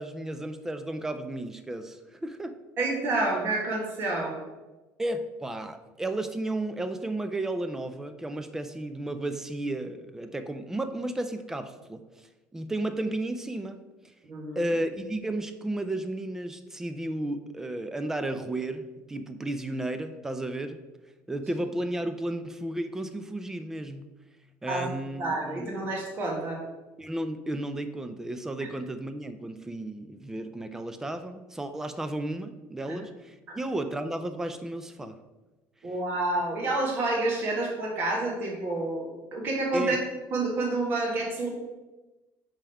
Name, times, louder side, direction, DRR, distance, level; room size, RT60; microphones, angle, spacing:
voice 1, 0.0-2.6 5.0-12.3 12.5-13.8 14.6-20.8 21.3-24.1 24.6-25.7 27.0-35.2 39.7-40.0, right 1 dB, 5° right, 9 dB, 0.3 m, -33 dB
voice 2, 2.8-4.3 14.2-14.6 24.7-24.9 25.2-26.6 32.9-33.0 33.5-33.6 35.8-40.0 40.3-41.5, right 2 dB, 35° right, -2 dB, 1.5 m, -29 dB
5.2 x 3.6 x 5.6 m, 1.1 s
cardioid pair, 170°, 6 cm